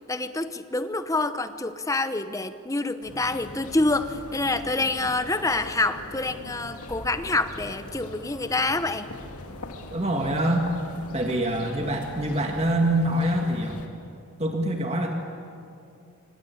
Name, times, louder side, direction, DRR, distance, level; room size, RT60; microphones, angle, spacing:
voice 1, 0.0-9.1, left 2 dB, 15° left, 11 dB, 0.9 m, -27 dB
sound 1, 3.0-13.9, left 2 dB, 85° left, 2.2 m, -41 dB
voice 2, 9.9-10.7 11.1-13.8 14.4-15.1, right 1 dB, 30° right, 2 dB, 1.8 m, -25 dB
26.5 x 24.5 x 8.6 m, 2.5 s
head